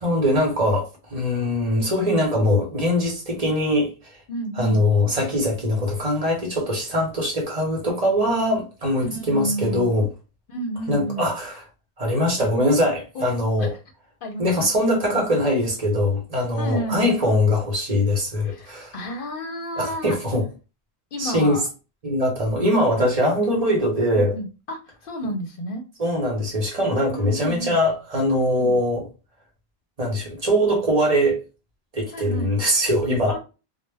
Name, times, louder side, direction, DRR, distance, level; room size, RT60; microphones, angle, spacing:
voice 1, 0.0-3.9 4.6-10.1 10.9-11.6 12.0-13.7 14.4-18.9 19.8-20.4 21.2-21.6 22.0-24.4 26.0-29.1 30.0-31.4 31.9-33.4, left 1 dB, 40° right, 0.8 m, -22 dB
voice 2, 4.3-4.8 9.0-9.9 10.5-11.3 13.1-13.3 13.6-13.7 14.2-15.2 16.6-17.1 18.4-20.2 21.1-21.7 24.1-25.8 27.1-27.8 28.5-28.8 32.1-32.5 33.3-33.4, equal, 65° left, 0.7 m, -31 dB
2.1 x 2.1 x 3.2 m
omnidirectional pair, 1.0 m